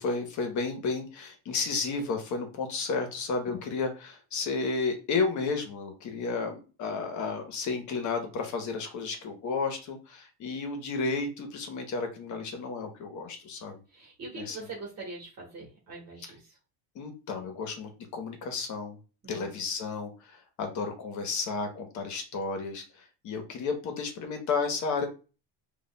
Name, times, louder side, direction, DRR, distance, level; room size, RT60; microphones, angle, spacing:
voice 1, 0.0-13.8 14.3-14.7 16.2-16.3 16.9-19.0 19.3-25.1, left 4 dB, 45° left, 5 dB, 1.0 m, -32 dB
voice 2, 13.9-16.4 19.2-19.5, right 3 dB, 40° right, -2 dB, 1.4 m, -42 dB
5.2 x 2.5 x 2.2 m, 0.33 s
cardioid pair, 135°, 40 cm